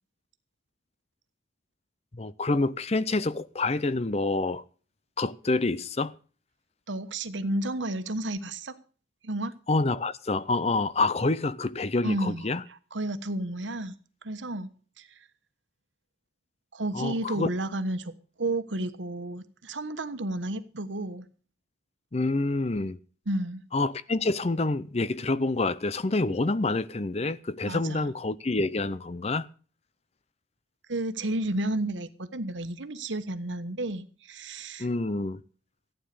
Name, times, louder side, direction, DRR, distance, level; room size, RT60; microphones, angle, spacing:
voice 1, 2.1-4.6 5.2-6.1 9.7-12.6 16.9-17.5 22.1-23.0 23.7-29.5 34.8-35.4, left 2 dB, 35° left, 0.6 m, -27 dB
voice 2, 6.9-8.8 9.2-9.5 12.0-13.9 14.2-15.3 16.7-18.1 18.4-21.3 23.3-23.6 27.7-28.1 30.9-34.9, right 1 dB, 90° right, 1.3 m, -32 dB
15.0 x 9.2 x 6.8 m
head